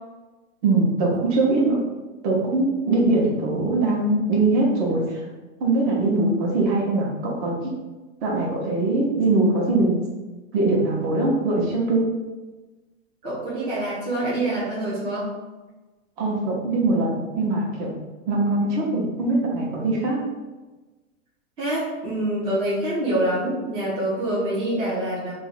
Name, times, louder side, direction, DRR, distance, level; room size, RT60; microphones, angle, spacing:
voice 1, 0.6-1.8 2.2-5.2 5.6-7.7 8.2-10.0 10.5-12.1 16.2-17.9 18.3-20.3, right 2 dB, 40° right, -2 dB, 0.9 m, -22 dB
voice 2, 13.2-15.3 21.6-25.3, right 1 dB, 15° right, -8 dB, 0.5 m, -25 dB
2.6 x 2.2 x 4.0 m, 1.2 s
hypercardioid pair, 150°, 39 cm